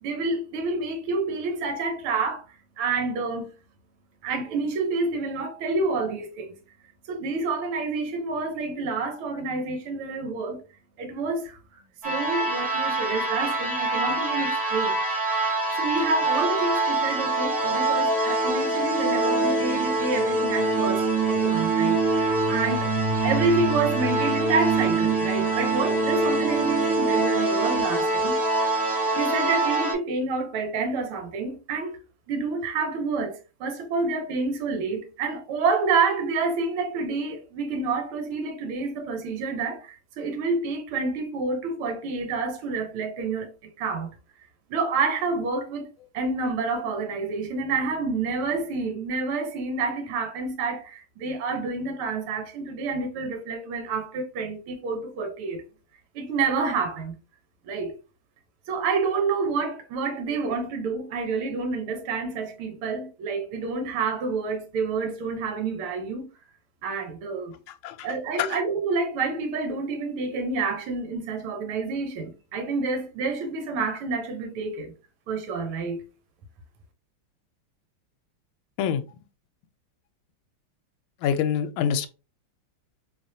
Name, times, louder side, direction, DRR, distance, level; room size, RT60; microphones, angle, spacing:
voice 1, 0.0-3.5 4.2-6.6 7.1-10.6 11.0-15.0 15.8-22.9 23.2-28.7 29.2-32.0 32.3-44.1 44.7-45.9 46.1-55.6 56.2-57.2 57.6-58.0 58.7-66.3 66.8-67.5 68.0-74.9 75.3-76.0, right 4 dB, 80° right, 1.7 m, -28 dB
sound 1, 12.0-29.9, right 3 dB, 30° right, 1.9 m, -24 dB
voice 2, 81.2-82.1, left 8 dB, 75° left, 1.3 m, -25 dB
3.9 x 3.1 x 2.6 m
omnidirectional pair, 2.4 m